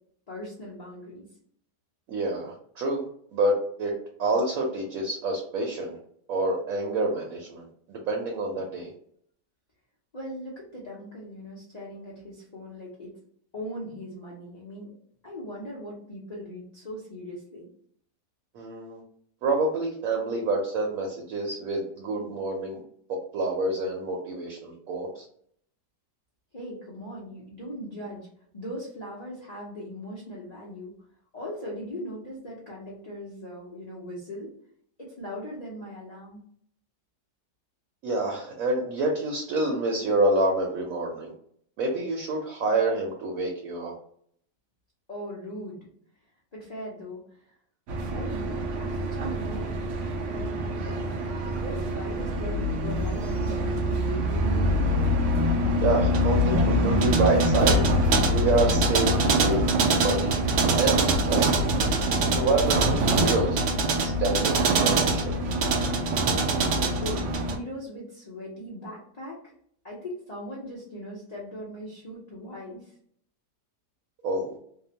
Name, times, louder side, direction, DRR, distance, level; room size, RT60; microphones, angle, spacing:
voice 1, 0.3-1.3 10.1-13.1 13.5-14.9 15.2-17.7 26.5-28.3 28.5-30.9 31.3-34.5 35.0-36.4 45.1-45.9 46.5-47.2 48.1-49.8 50.2-54.2 66.9-69.4 69.8-72.9, equal, 65° left, -6 dB, 0.4 m, -39 dB
voice 2, 2.1-3.0 3.3-3.9 4.2-6.0 6.3-7.6 7.9-8.9 18.5-19.0 19.4-22.8 23.1-25.3 38.0-41.3 41.8-43.9 55.8-57.8 58.3-60.3 60.7-61.6 62.3-63.6 64.0-65.4 74.2-74.6, right 2 dB, 65° right, 0 dB, 0.9 m, -27 dB
sound 1, 47.9-67.6, right 1 dB, 85° right, 0.6 m, -24 dB
2.8 x 2.0 x 2.7 m, 0.64 s
omnidirectional pair, 1.8 m